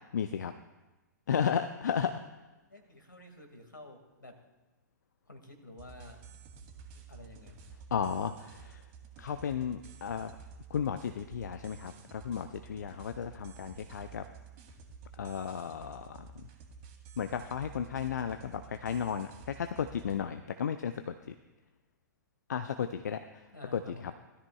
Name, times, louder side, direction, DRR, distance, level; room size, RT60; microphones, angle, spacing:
voice 1, 0.1-0.5 1.3-2.2 7.9-8.8 9.2-10.3 10.7-14.3 15.2-16.3 17.2-21.3 22.5-23.4 23.7-23.8, left 7 dB, 65° left, 9 dB, 0.5 m, -34 dB
voice 2, 2.7-4.4 5.2-6.2 6.9-7.6 23.5-24.1, left 2 dB, 85° left, 4 dB, 2.1 m, -50 dB
sound 1, 5.8-20.2, right 6 dB, 35° right, 2.1 m, -51 dB
17.0 x 13.0 x 2.4 m, 1.1 s
figure-of-eight pair, 110°, 10 cm